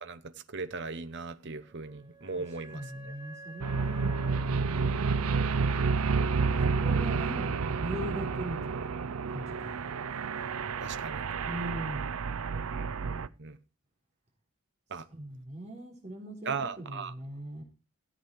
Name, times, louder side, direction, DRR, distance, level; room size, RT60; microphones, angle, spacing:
voice 1, 0.5-3.1 10.8-11.3 12.8-13.6 14.9-15.0 16.5-17.1, right 4 dB, 55° right, 0.8 m, -38 dB
Wind instrument woodwind instrument, 1.5-6.1, right 2 dB, 15° right, 3.4 m, -51 dB
voice 2, 2.7-5.3 6.7-8.6 9.3-9.9 11.4-12.2 15.1-17.6, right 1 dB, 30° right, 4.0 m, -40 dB
sound 1, 3.6-13.3, right 4 dB, 75° right, 0.5 m, -30 dB
14.0 x 8.4 x 4.6 m
head